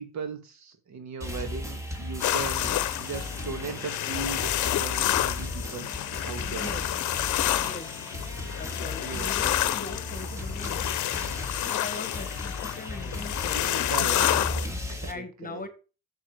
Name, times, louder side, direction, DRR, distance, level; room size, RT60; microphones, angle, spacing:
voice 1, 0.0-5.9 6.2-6.7 9.0-9.3 13.5-15.7, right 5 dB, 65° right, 8 dB, 1.8 m, -38 dB
sound 1, 1.2-15.1, left 1 dB, 10° right, 2.3 m, -36 dB
sound 2, 2.2-14.7, left 13 dB, 75° left, 0.7 m, -29 dB
voice 2, 6.5-6.9 7.6-8.0 8.6-10.9 11.5-14.2 15.1-15.7, left 3 dB, 30° left, 10 dB, 1.5 m, -41 dB
7.4 x 6.4 x 4.9 m, 0.33 s
cardioid pair, 90°, 30 cm